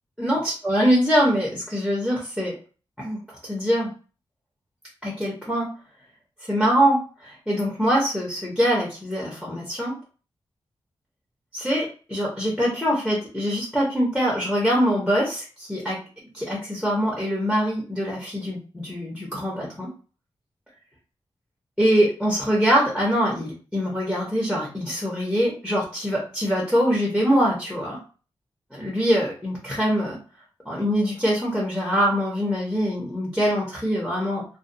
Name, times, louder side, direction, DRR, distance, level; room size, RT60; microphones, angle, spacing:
voice 1, 0.2-2.6 3.0-3.9 5.0-5.7 6.5-10.0 11.5-16.0 16.3-19.9 21.8-28.0 28.7-30.2 30.6-34.5, equal, 5° left, -4 dB, 0.8 m, -23 dB
2.3 x 2.2 x 2.6 m, 0.37 s
wide cardioid pair, 125°, 9 cm